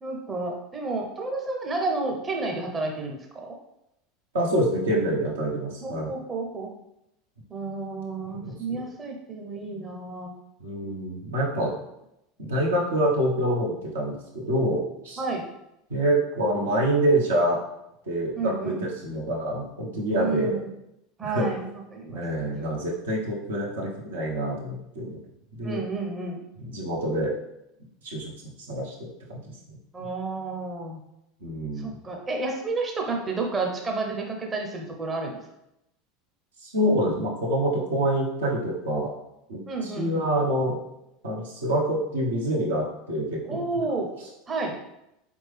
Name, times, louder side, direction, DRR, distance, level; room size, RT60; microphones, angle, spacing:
voice 1, 0.0-3.2 3.5-3.6 5.8-6.7 7.5-10.3 15.2-15.5 18.4-18.8 20.2-20.7 21.2-22.5 25.6-26.5 29.9-31.0 31.8-35.4 39.7-40.3 43.4-44.1 44.5-44.8, right 3 dB, 25° right, 1 dB, 0.7 m, -31 dB
voice 2, 4.3-6.1 8.4-8.8 10.6-11.7 12.4-15.2 15.9-17.6 18.1-18.7 19.0-20.6 21.2-21.5 22.1-25.2 25.5-25.8 26.6-27.3 28.0-28.3 28.7-29.4 29.7-29.8 30.0-30.1 31.4-31.9 36.6-39.1 39.5-40.8 41.2-43.6, right 1 dB, 75° right, -3 dB, 1.0 m, -26 dB
3.9 x 3.5 x 3.3 m, 0.85 s
figure-of-eight pair, 80°, 0 cm